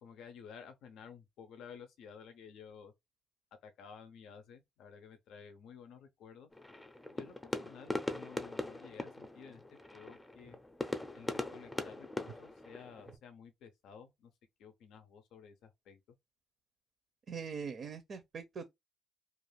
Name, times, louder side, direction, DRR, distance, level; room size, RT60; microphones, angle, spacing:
voice 1, 0.0-2.9 3.6-6.5 7.2-10.6 11.1-14.3 14.6-16.2, left 6 dB, 80° left, 0.5 m, -53 dB
sound 1, 6.5-13.2, left 2 dB, 15° left, 0.5 m, -41 dB
voice 2, 17.3-18.7, right 6 dB, 55° right, 0.5 m, -42 dB
2.4 x 2.3 x 3.1 m
cardioid pair, 90°, 0 cm